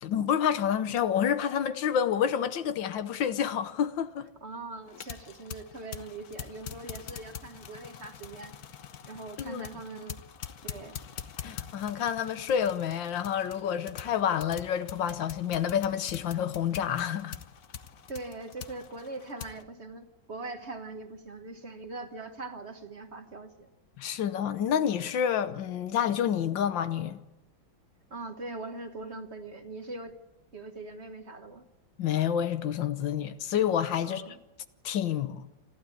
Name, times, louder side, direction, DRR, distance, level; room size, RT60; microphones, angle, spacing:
voice 1, 0.0-4.3 9.4-9.7 11.4-17.4 24.0-27.2 32.0-34.3 34.8-35.5, left 9 dB, 85° left, 1.7 m, -28 dB
voice 2, 4.4-8.5 9.0-10.2 10.6-11.0 18.1-23.7 28.1-30.1 30.5-31.6 34.1-34.4, right 3 dB, 40° right, 1.6 m, -41 dB
sound 1, 4.9-19.6, left 8 dB, 60° left, 1.4 m, -44 dB
28.0 x 12.0 x 8.5 m
omnidirectional pair, 2.0 m